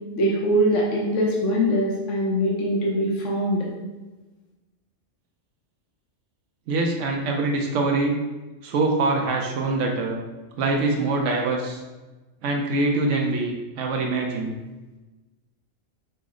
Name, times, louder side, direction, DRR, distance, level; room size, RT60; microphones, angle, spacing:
voice 1, 0.1-3.6, equal, 75° left, -3 dB, 1.1 m, -22 dB
voice 2, 6.7-8.2 8.6-10.2 10.6-11.8 12.4-14.5, right 3 dB, 75° right, 1 dB, 0.9 m, -24 dB
5.5 x 2.0 x 3.6 m, 1.2 s
omnidirectional pair, 1.3 m